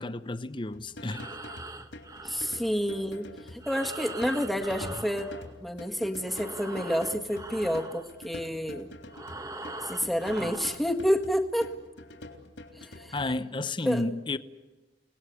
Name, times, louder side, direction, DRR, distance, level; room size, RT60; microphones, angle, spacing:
voice 1, 0.0-1.3 13.1-14.4, left 2 dB, 25° left, 0.8 m, -32 dB
sound 1, 0.7-13.4, left 1 dB, 75° left, 3.6 m, -46 dB
Breathing, 0.9-5.9 6.2-10.9, right 2 dB, 20° right, 1.3 m, -42 dB
voice 2, 2.2-5.3 5.6-8.9 9.8-11.7 12.7-13.2 13.8-14.1, equal, ahead, 1.7 m, -29 dB
30.0 x 19.0 x 8.3 m
head